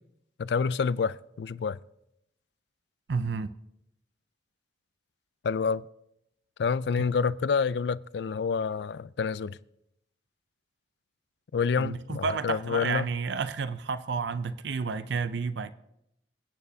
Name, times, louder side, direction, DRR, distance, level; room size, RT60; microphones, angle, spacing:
voice 1, 0.4-1.8 5.4-5.8 6.6-9.6 11.5-13.1, left 5 dB, 65° left, 0.4 m, -28 dB
voice 2, 3.1-3.5 11.8-15.7, right 5 dB, 75° right, 0.5 m, -31 dB
27.0 x 9.0 x 2.8 m
head